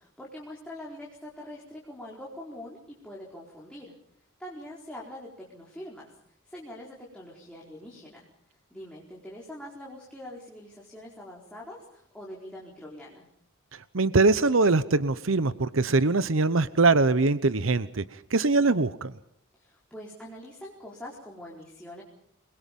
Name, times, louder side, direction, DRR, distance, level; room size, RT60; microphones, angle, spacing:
voice 1, 0.0-3.9 4.4-6.2 6.4-8.3 8.7-13.3 19.5-22.0, left 1 dB, 5° left, -4 dB, 4.4 m, -44 dB
voice 2, 13.9-19.1, right 3 dB, 65° right, 15 dB, 0.9 m, -22 dB
29.0 x 22.0 x 5.4 m, 0.71 s
head